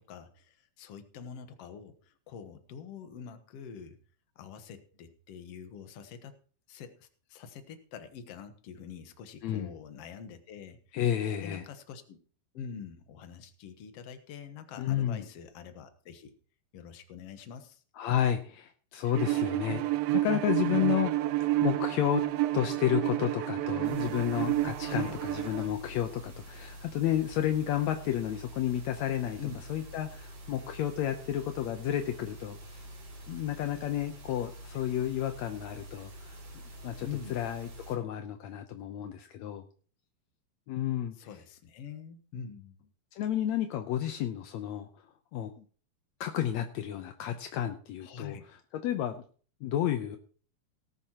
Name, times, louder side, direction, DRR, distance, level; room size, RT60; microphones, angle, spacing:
voice 1, 0.0-4.0 4.3-6.3 6.7-11.0 11.4-12.2 12.5-16.3 16.7-17.8 24.8-25.2 29.4-29.5 34.3-34.5 37.0-37.4 41.2-42.8 48.0-48.4, left 7 dB, 60° left, 8 dB, 1.7 m, -45 dB
voice 2, 9.4-9.7 10.9-11.7 14.8-15.2 18.0-21.1 21.6-22.2 22.5-29.4 29.7-32.9 33.3-36.4 36.8-39.6 40.7-41.1 43.1-44.9 45.3-45.6 46.2-48.4 48.7-49.2 49.6-50.2, left 11 dB, 80° left, 7 dB, 1.6 m, -31 dB
Bowed string instrument, 19.1-25.7, right 16 dB, 85° right, 2.5 m, -30 dB
sound 1, 23.8-38.0, equal, 55° right, 5.1 m, -47 dB
18.5 x 10.5 x 3.0 m, 0.41 s
omnidirectional pair, 4.2 m